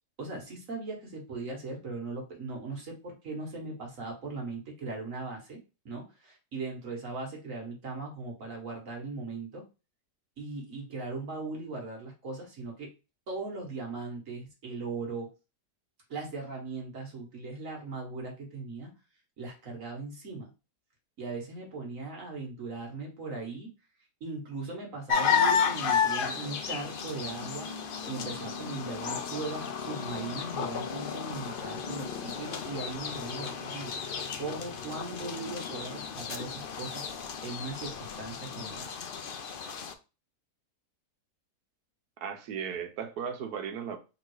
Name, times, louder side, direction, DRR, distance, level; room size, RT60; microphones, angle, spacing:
voice 1, 0.2-5.6 5.8-9.7 10.4-12.9 13.3-15.3 16.1-18.9 19.4-20.5 21.2-23.7 24.2-27.7 28.0-33.9 34.3-38.9, right 3 dB, 55° right, 1.6 m, -39 dB
sound 1, 25.1-39.9, left 6 dB, 90° left, 0.4 m, -33 dB
voice 2, 42.2-44.0, right 7 dB, 75° right, 1.4 m, -36 dB
3.7 x 3.1 x 4.7 m
omnidirectional pair, 1.7 m